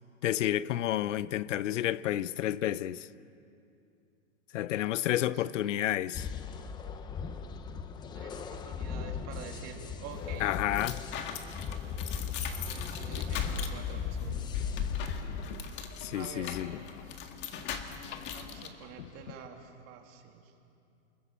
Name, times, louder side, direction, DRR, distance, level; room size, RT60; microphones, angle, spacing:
voice 1, 0.2-3.1 4.5-6.3 10.4-11.0 16.0-16.7, left 13 dB, 80° left, 0.7 m, -30 dB
voice 2, 5.1-5.4 8.1-10.5 12.5-14.5 16.1-16.6 18.3-20.5, right 8 dB, 35° right, 2.7 m, -48 dB
sound 1, 6.1-15.5, left 6 dB, 10° left, 0.6 m, -38 dB
sound 2, 10.1-18.7, left 7 dB, 30° left, 1.7 m, -38 dB
sound 3, 12.9-19.5, left 9 dB, 60° left, 1.3 m, -50 dB
29.5 x 21.5 x 7.5 m
supercardioid pair, 150°, 36 cm